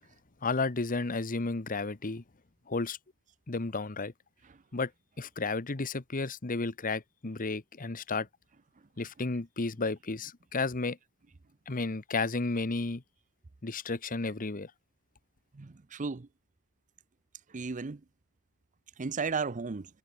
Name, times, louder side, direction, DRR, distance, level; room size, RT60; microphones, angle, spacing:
voice 1, 0.4-2.2 2.7-3.0 3.5-4.1 4.7-4.9 5.2-8.3 9.0-11.0 11.7-13.0 13.6-14.7, left 3 dB, 40° left, 1.1 m, -32 dB
voice 2, 15.5-16.3 17.5-18.0 19.0-19.9, right 4 dB, 35° right, 0.6 m, -34 dB
head